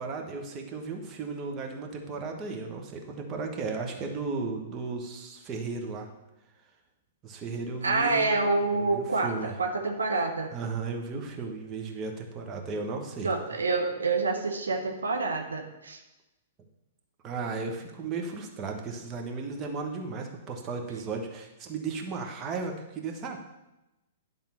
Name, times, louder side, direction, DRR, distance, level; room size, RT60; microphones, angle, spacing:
voice 1, 0.0-6.1 7.2-8.3 8.7-9.5 10.5-13.3 17.2-23.4, right 4 dB, 30° right, 2 dB, 1.3 m, -35 dB
voice 2, 7.8-10.5 13.2-16.0, right 3 dB, 80° right, 4 dB, 0.9 m, -27 dB
10.5 x 3.7 x 5.9 m, 0.96 s
figure-of-eight pair, 110°, 0 cm